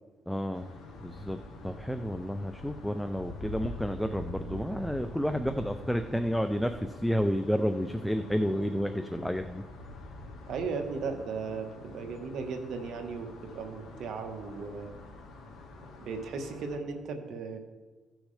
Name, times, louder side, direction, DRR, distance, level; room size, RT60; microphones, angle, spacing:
voice 1, 0.3-0.7 1.0-1.4 1.6-9.6, equal, ahead, 7 dB, 0.5 m, -30 dB
sound 1, 0.5-16.8, left 2 dB, 70° left, 1.7 m, -45 dB
voice 2, 10.5-15.0 16.0-17.6, right 4 dB, 70° right, 5 dB, 1.3 m, -36 dB
16.0 x 6.2 x 3.3 m, 1.3 s
cardioid pair, 90°, 0 cm